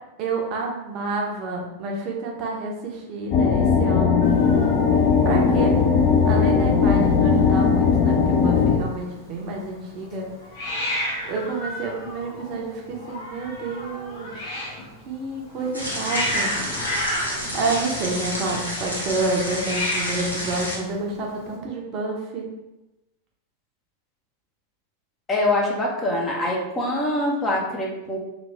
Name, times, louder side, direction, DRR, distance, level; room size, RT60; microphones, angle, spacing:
voice 1, 0.2-4.3 5.2-5.8 6.2-10.3 11.2-14.3 15.1-16.5 17.5-22.5, right 3 dB, 40° right, -1 dB, 0.7 m, -29 dB
sound 1, 3.3-8.8, left 5 dB, 35° left, 0.4 m, -18 dB
Hiss, 4.2-21.6, left 1 dB, 50° left, 1.2 m, -33 dB
sound 2, 15.7-20.8, equal, 85° left, 0.7 m, -30 dB
voice 2, 25.3-28.2, left 1 dB, 20° left, -2 dB, 0.8 m, -24 dB
3.2 x 2.5 x 3.4 m, 0.95 s
figure-of-eight pair, 90°, 0 cm